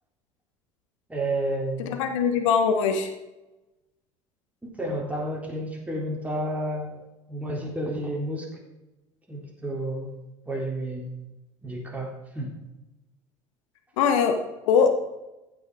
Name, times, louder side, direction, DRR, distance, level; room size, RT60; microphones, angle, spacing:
voice 1, 1.1-2.0 4.8-7.0 7.3-8.5 9.3-10.2 10.5-11.2 11.6-12.6, right 1 dB, 10° right, -2 dB, 3.9 m, -31 dB
voice 2, 1.8-3.1 14.0-14.4 14.6-14.9, left 6 dB, 65° left, 6 dB, 1.2 m, -21 dB
15.0 x 6.3 x 4.9 m, 1.0 s
figure-of-eight pair, 65°, 17 cm